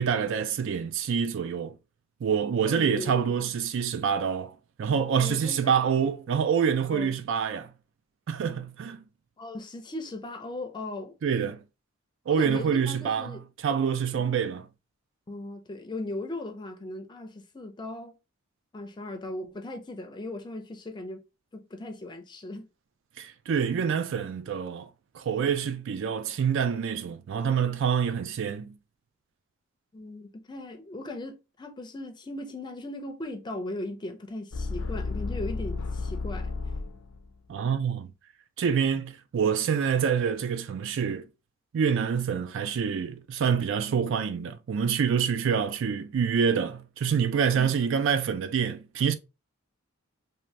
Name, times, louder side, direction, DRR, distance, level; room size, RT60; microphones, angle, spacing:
voice 1, 0.0-1.8 2.2-7.7 8.3-9.0 11.2-11.6 12.3-13.3 13.6-14.7 23.2-24.9 25.1-28.7 37.5-38.1 38.6-41.3 41.7-49.2, right 7 dB, 60° right, 0.3 m, -26 dB
voice 2, 2.7-3.5 5.2-6.1 6.9-7.2 9.4-11.1 12.3-13.5 15.3-18.2 18.7-21.2 21.5-22.7 29.9-36.5 47.5-47.7, left 1 dB, 20° left, 0.5 m, -38 dB
sound 1, 34.5-37.3, left 3 dB, 80° left, 0.5 m, -32 dB
2.7 x 2.6 x 3.1 m
head